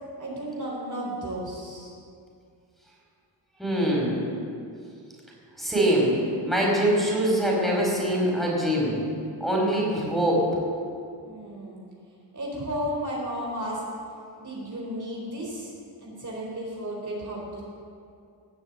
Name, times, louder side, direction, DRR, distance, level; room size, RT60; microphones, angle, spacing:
voice 1, 0.2-1.9 11.2-11.9 12.3-13.8 14.4-15.7 16.0-17.6, equal, 40° right, -3 dB, 3.9 m, -33 dB
voice 2, 3.6-4.3 5.6-9.0 9.4-10.5, equal, ahead, -4 dB, 5.1 m, -23 dB
19.5 x 7.0 x 8.7 m, 2.4 s
wide cardioid pair, 100°, 46 cm